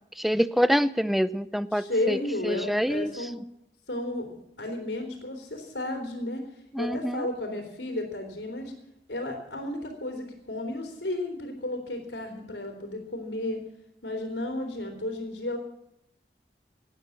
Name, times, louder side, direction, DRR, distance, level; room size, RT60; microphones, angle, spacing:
voice 1, 0.2-2.2 2.4-3.1 6.7-7.2, equal, ahead, 15 dB, 0.5 m, -26 dB
voice 2, 1.7-3.4 3.9-6.4 6.8-8.7 9.1-13.6 14.0-15.6, left 1 dB, 90° left, 3 dB, 3.5 m, -33 dB
17.5 x 10.5 x 7.3 m, 0.84 s
head